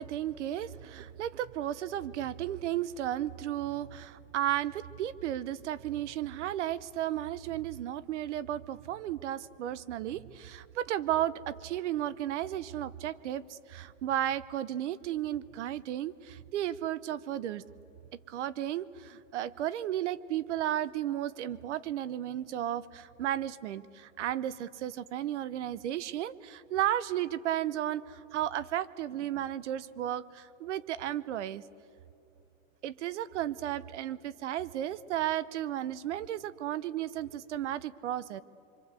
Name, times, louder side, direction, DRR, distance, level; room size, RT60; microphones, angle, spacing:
voice 1, 0.0-17.6 18.3-31.6 32.8-38.4, right 12 dB, 65° right, 18 dB, 0.9 m, -34 dB
25.5 x 24.5 x 8.3 m, 2.8 s
supercardioid pair, 180°, 38 cm